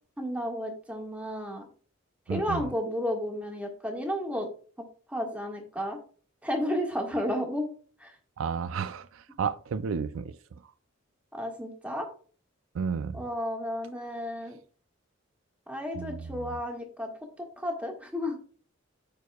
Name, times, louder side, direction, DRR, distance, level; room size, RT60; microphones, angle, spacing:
voice 1, 0.2-1.7 2.3-4.5 5.1-6.0 6.4-7.7 8.0-8.1 11.3-12.1 13.1-14.6 15.7-17.1 17.6-18.4, equal, 5° right, 1.5 m, -32 dB
voice 2, 2.3-2.7 8.4-10.6 12.7-13.2 16.0-16.6, right 6 dB, 80° right, 0.4 m, -33 dB
13.5 x 4.7 x 2.3 m
head